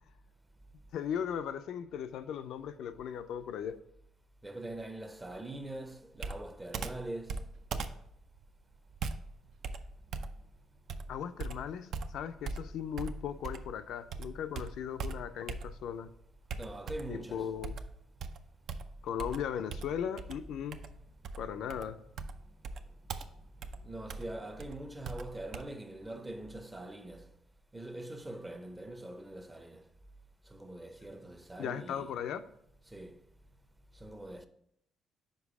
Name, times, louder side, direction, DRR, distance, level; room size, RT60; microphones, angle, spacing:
voice 1, 0.9-3.8 11.1-16.1 17.1-17.8 19.0-20.8 21.4-22.0 31.6-32.5, left 8 dB, 80° left, 0.3 m, -37 dB
voice 2, 4.4-7.4 16.6-17.5 23.8-27.3 27.7-29.8 30.5-32.1 32.9-33.2 34.0-34.5, right 1 dB, 15° right, 0.6 m, -43 dB
Computer keyboard, 6.2-13.8 14.1-16.0 16.5-17.2 17.6-25.6, right 4 dB, 70° right, 0.4 m, -41 dB
5.2 x 4.7 x 4.7 m
cardioid pair, 90°, 0 cm